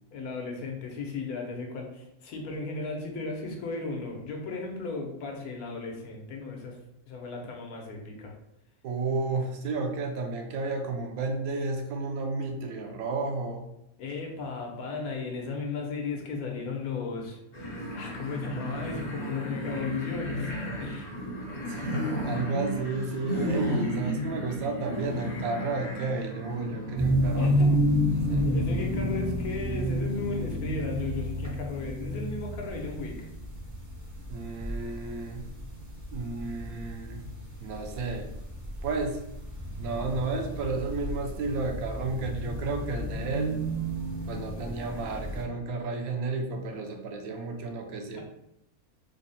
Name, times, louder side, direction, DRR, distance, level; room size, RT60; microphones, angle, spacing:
voice 1, 0.1-6.8 7.1-8.3 14.0-21.1 27.4-27.7 28.4-33.3 48.1-48.2, left 4 dB, 80° left, 1 dB, 1.3 m, -35 dB
voice 2, 8.8-13.7 21.7-27.8 28.1-28.5 34.3-35.5 36.1-37.2 37.6-38.3 38.8-39.2 39.8-43.6 44.3-48.2, right 3 dB, 75° right, 3 dB, 1.1 m, -32 dB
sound 1, 17.5-27.0, equal, 40° left, 0.6 m, -34 dB
sound 2, 27.0-45.4, equal, 25° right, 0.4 m, -31 dB
3.7 x 2.1 x 3.9 m, 0.82 s
omnidirectional pair, 1.5 m